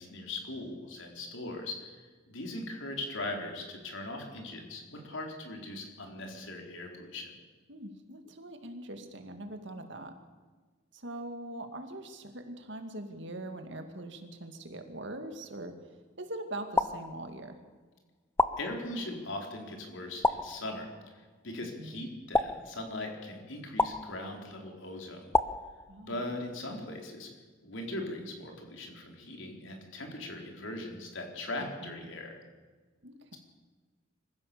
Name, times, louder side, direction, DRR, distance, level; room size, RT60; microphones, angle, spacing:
voice 1, 0.0-7.4 18.6-20.9 21.1-25.4 26.0-27.3 27.6-32.4, left 2 dB, 70° left, 2 dB, 4.1 m, -40 dB
voice 2, 7.7-10.1 10.9-15.7 16.2-17.6 21.6-22.1 25.9-26.3 31.6-32.1 33.0-33.4, right 1 dB, 60° right, 6 dB, 2.3 m, -42 dB
sound 1, 16.8-17.7 18.4-19.3 20.2-21.1 22.3-23.2 23.8-24.6 25.3-26.3, left 2 dB, 10° left, 0.5 m, -31 dB
25.0 x 15.5 x 7.0 m, 1.4 s
head